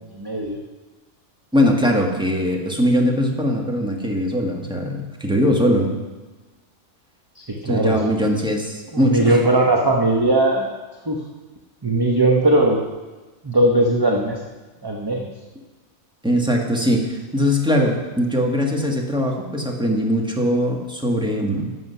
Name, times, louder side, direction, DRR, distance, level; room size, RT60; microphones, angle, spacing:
voice 1, 0.2-0.6 7.6-8.0 8.9-10.7 11.1-11.2 11.8-12.8 13.4-14.4 14.8-15.3, right 2 dB, 20° right, 0 dB, 0.9 m, -18 dB
voice 2, 1.5-5.9 7.6-9.4 16.2-21.7, equal, 5° right, 1 dB, 1.4 m, -21 dB
12.0 x 7.7 x 5.6 m, 1.2 s
omnidirectional pair, 1.4 m